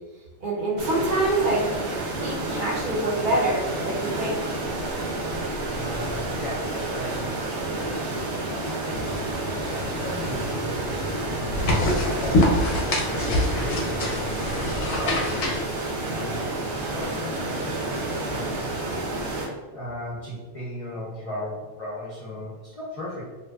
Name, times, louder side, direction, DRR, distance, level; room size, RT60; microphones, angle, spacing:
voice 1, 0.4-1.6 2.2-4.4, right 2 dB, 55° right, -4 dB, 0.7 m, -25 dB
sound 1, 0.8-19.5, right 2 dB, 85° right, 0.8 m, -30 dB
voice 2, 5.7-11.7 12.0-12.7 13.0-18.6 19.7-23.2, left 1 dB, 45° left, -8 dB, 0.5 m, -36 dB
sound 2, 8.9-15.6, left 1 dB, 85° left, 0.9 m, -26 dB
2.6 x 2.2 x 2.2 m, 1.3 s
omnidirectional pair, 1.1 m